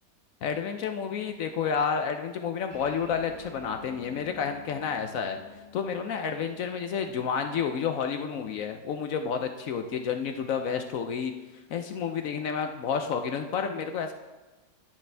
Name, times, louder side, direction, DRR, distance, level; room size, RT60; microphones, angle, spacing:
voice 1, 0.4-5.4 5.7-11.3 11.7-14.1, left 6 dB, 70° left, 7 dB, 0.8 m, -30 dB
sound 1, 2.7-9.5, left 3 dB, 25° right, 3.9 m, -51 dB
10.5 x 9.3 x 3.3 m, 1.2 s
omnidirectional pair, 2.0 m